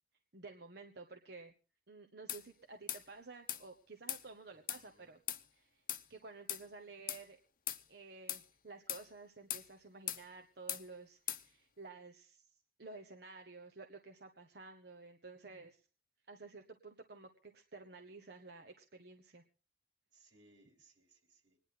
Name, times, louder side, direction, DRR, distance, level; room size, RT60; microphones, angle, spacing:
voice 1, 0.3-1.5 1.9-5.2 5.5-5.8 6.1-7.4 7.9-12.5 12.8-15.8 16.3-19.4, right 3 dB, 60° right, 4 dB, 1.1 m, -53 dB
sound 1, 2.3-2.4 2.9-3.0 3.5-3.6 4.1-4.2 4.7-4.8 5.3-5.4 5.9-6.0 6.5-6.6 7.1-7.2 7.7-7.8 8.3-8.4 8.9-9.0 9.5-9.7 10.1-10.2 10.7-10.8 11.3-11.4, left 12 dB, 50° left, 0.8 m, -39 dB
voice 2, 4.5-5.1 18.1-18.2 20.1-21.6, right 2 dB, 90° right, 4 dB, 3.2 m, -67 dB
25.5 x 10.0 x 3.9 m, 0.36 s
head